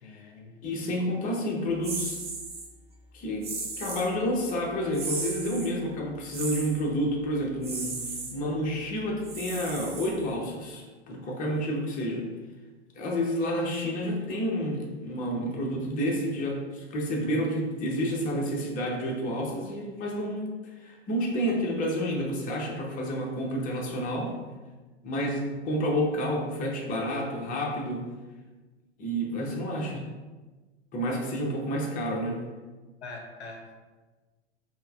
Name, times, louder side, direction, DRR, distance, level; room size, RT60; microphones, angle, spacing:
voice 1, 0.0-0.6 33.0-33.8, left 2 dB, 80° left, 3 dB, 0.5 m, -43 dB
voice 2, 0.6-2.2 3.1-8.0 8.3-12.3 13.0-20.4 20.8-24.4 25.0-28.1 29.0-30.0 30.9-32.4, equal, 25° left, -1 dB, 0.7 m, -30 dB
sound 1, 1.8-2.7 3.4-4.1 4.9-5.7 6.3-6.8 7.6-8.3 9.2-10.4, right 4 dB, 20° right, 0.6 m, -35 dB
5.3 x 2.1 x 2.4 m, 1.3 s
figure-of-eight pair, 95°, 33 cm